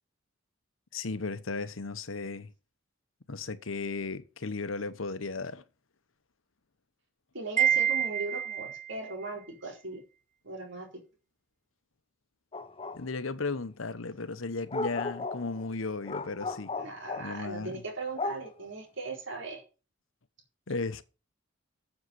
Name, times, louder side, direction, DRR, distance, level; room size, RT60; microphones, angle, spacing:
voice 1, 0.9-2.5 3.3-5.6 12.9-16.7 17.2-17.7 20.7-21.0, left 3 dB, 80° left, 1.0 m, -35 dB
voice 2, 7.3-10.0 10.4-10.9 16.8-19.6, right 3 dB, 65° right, 4.4 m, -38 dB
Wind chime, 7.6-9.0, right 9 dB, 40° right, 0.6 m, -27 dB
sound 1, 12.5-13.0 14.7-17.3 18.2-18.6, left 3 dB, 30° left, 0.9 m, -35 dB
7.9 x 7.3 x 8.0 m
head